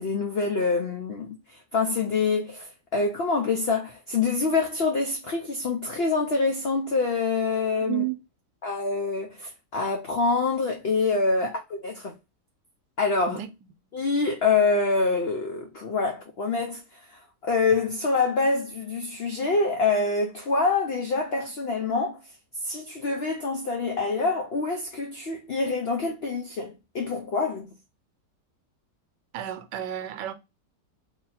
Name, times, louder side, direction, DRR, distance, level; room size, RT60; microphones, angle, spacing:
voice 1, 0.0-8.0 8.6-12.1 13.0-13.4 13.9-17.0 17.4-22.2 22.6-27.7, left 4 dB, 90° left, 0.5 m, -26 dB
voice 2, 7.8-8.2 13.3-13.5 29.3-30.3, right 13 dB, 90° right, 1.2 m, -31 dB
2.9 x 2.7 x 4.1 m
omnidirectional pair, 1.8 m